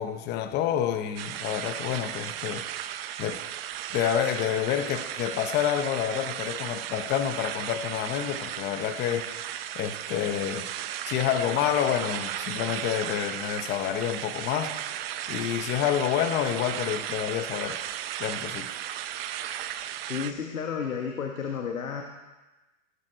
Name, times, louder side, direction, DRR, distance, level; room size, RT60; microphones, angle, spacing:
voice 1, 0.0-2.6 3.2-3.4 3.9-10.7 11.1-17.8 18.2-18.7, left 10 dB, 25° left, 8 dB, 0.9 m, -28 dB
sound 1, 1.2-20.3, right 11 dB, 45° right, 0.8 m, -35 dB
voice 2, 20.0-22.0, left 6 dB, 90° left, 2 dB, 1.6 m, -32 dB
19.5 x 7.4 x 4.5 m, 1.1 s
hypercardioid pair, 135°, 41 cm